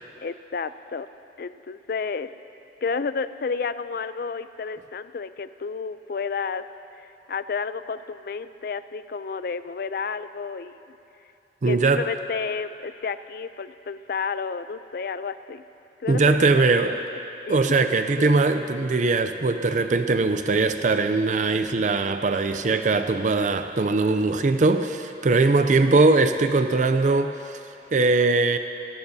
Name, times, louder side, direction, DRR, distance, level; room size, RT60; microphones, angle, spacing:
voice 1, 0.2-1.1 1.4-2.3 2.8-6.6 7.0-10.8 11.6-15.6 16.0-17.0 17.5-17.7 17.9-18.3, left 5 dB, 55° left, 13 dB, 0.4 m, -31 dB
voice 2, 11.6-12.0 16.1-17.0 17.5-27.6 27.9-28.6, right 3 dB, 45° right, 8 dB, 0.4 m, -21 dB
27.0 x 14.0 x 2.7 m, 2.9 s
head